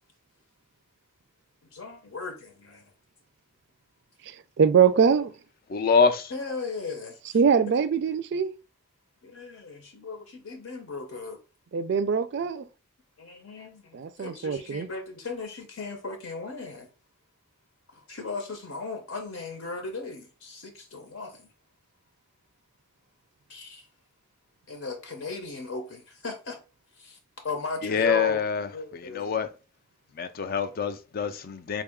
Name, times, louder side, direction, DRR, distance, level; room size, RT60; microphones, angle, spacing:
voice 1, 1.7-2.9 6.3-7.2 9.2-11.4 13.2-16.9 17.9-21.5 23.5-23.8 24.7-26.6 26.9-27.2 27.4-28.4 28.7-29.3, left 3 dB, 70° left, 0.7 m, -37 dB
voice 2, 4.3-5.3 7.3-8.5 11.7-12.7 13.9-14.9, right 6 dB, 55° right, 0.3 m, -23 dB
voice 3, 5.7-6.3 27.8-29.5 30.1-31.8, left 5 dB, 45° left, 0.4 m, -25 dB
3.6 x 2.3 x 3.5 m
head